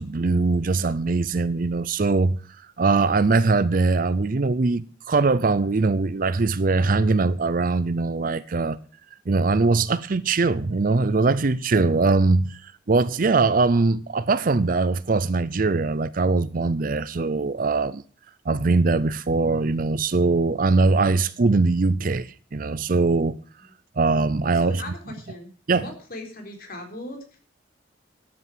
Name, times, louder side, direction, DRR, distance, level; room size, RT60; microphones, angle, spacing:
voice 1, 0.0-2.4 2.8-8.8 9.3-18.0 18.5-23.4 24.0-24.8 25.7-25.9, right 3 dB, 50° right, 0.5 m, -21 dB
voice 2, 24.5-25.5 25.8-27.5, left 1 dB, 50° left, 3.8 m, -39 dB
12.5 x 8.6 x 7.4 m
head